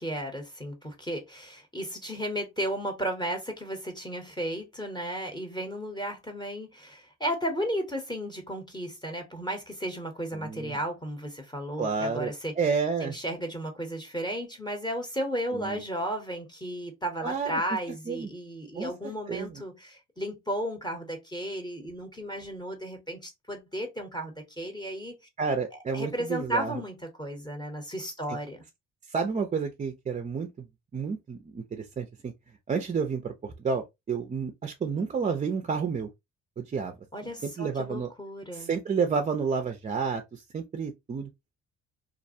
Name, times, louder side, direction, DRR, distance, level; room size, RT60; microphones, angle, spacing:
voice 1, 0.0-12.5 13.0-25.1 25.7-28.6 37.1-38.7, equal, 15° left, 0.8 m, -34 dB
voice 2, 10.3-10.8 11.8-13.1 15.5-15.8 17.2-17.6 18.1-18.3 18.8-19.6 25.4-26.8 29.1-30.7 30.9-32.3 32.7-36.1 36.6-36.9 37.2-38.1 38.5-41.3, right 5 dB, 25° right, 0.4 m, -30 dB
2.4 x 2.1 x 2.6 m
cardioid pair, 90°, 30 cm